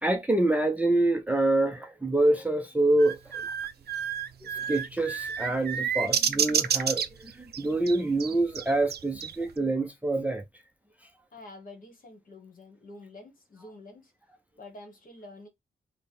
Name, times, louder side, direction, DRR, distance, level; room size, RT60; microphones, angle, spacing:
voice 1, 0.0-3.4 4.4-10.4, right 2 dB, 10° right, 0.5 m, -26 dB
sound 1, 3.0-9.5, right 8 dB, 60° right, 0.4 m, -30 dB
voice 2, 11.3-14.1 14.6-15.5, left 2 dB, 50° left, 1.3 m, -48 dB
3.4 x 2.1 x 4.2 m
wide cardioid pair, 150°, 19 cm